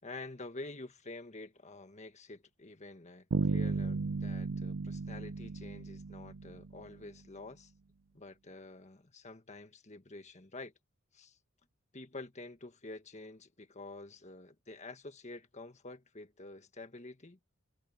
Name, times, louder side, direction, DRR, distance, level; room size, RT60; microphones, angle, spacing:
voice 1, 0.0-7.7 8.1-10.7 11.1-11.4 11.9-17.4, left 2 dB, 35° left, 1.7 m, -48 dB
Bass guitar, 3.3-7.1, right 4 dB, 65° right, 0.5 m, -35 dB
head